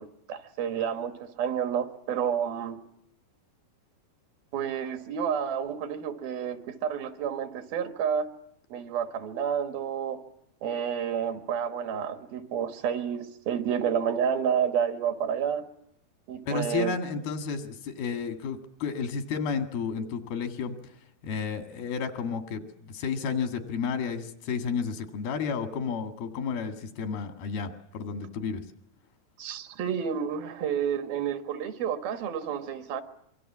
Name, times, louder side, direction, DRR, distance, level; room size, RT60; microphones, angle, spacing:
voice 1, 0.0-2.8 4.5-8.3 8.7-10.2 10.6-15.6 16.3-17.0 29.4-33.0, right 8 dB, 80° right, 7 dB, 3.4 m, -30 dB
voice 2, 16.5-20.9 21.2-28.6, left 5 dB, 90° left, 6 dB, 3.8 m, -32 dB
25.5 x 24.0 x 7.3 m, 0.75 s
omnidirectional pair, 4.2 m